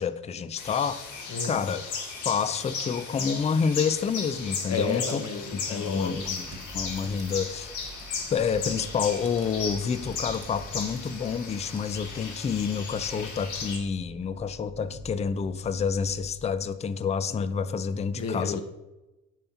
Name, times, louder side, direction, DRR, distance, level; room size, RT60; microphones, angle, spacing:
voice 1, 0.0-1.8 2.3-5.2 5.5-6.4 6.7-7.7 8.3-18.6, left 6 dB, 25° left, 12 dB, 0.3 m, -28 dB
sound 1, 0.6-13.8, left 5 dB, 80° left, 1.4 m, -36 dB
voice 2, 4.7-6.2 18.1-18.6, left 5 dB, 55° left, 6 dB, 0.9 m, -31 dB
sound 2, 4.8-13.1, right 4 dB, 85° right, 1.1 m, -53 dB
sound 3, 6.1-16.4, right 2 dB, 20° right, 1.0 m, -47 dB
7.3 x 2.7 x 5.7 m, 1.0 s
cardioid pair, 90°, 30 cm